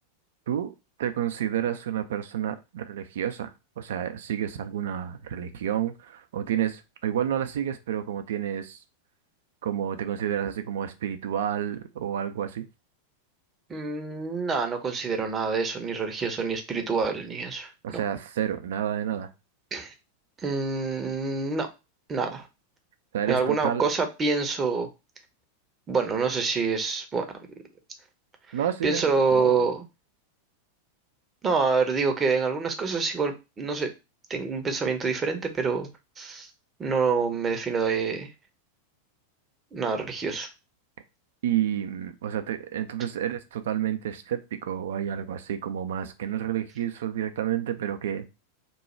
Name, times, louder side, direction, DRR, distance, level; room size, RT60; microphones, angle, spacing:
voice 1, 1.0-3.5 3.8-8.8 9.6-12.7 17.8-19.3 23.1-23.8 28.5-29.5 41.4-48.3, right 10 dB, 60° right, 0.4 m, -30 dB
voice 2, 13.7-18.0 19.7-19.9 20.4-21.7 22.1-22.5 23.3-24.9 25.9-27.3 28.8-29.8 31.4-33.9 34.3-35.9 36.2-36.5 36.8-38.3 39.7-40.5, right 4 dB, 20° right, 0.7 m, -26 dB
3.0 x 2.3 x 4.2 m
figure-of-eight pair, 90°, 0 cm